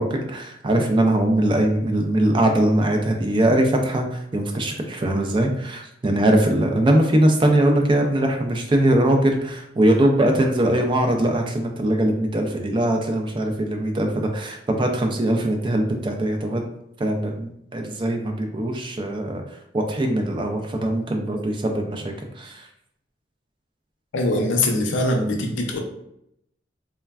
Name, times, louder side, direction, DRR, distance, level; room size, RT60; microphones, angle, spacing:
voice 1, 0.0-16.6 17.0-22.7, right 1 dB, 25° right, 3 dB, 0.3 m, -21 dB
voice 2, 24.1-25.8, left 1 dB, 85° left, 1 dB, 0.5 m, -22 dB
3.3 x 2.1 x 2.3 m, 0.78 s
head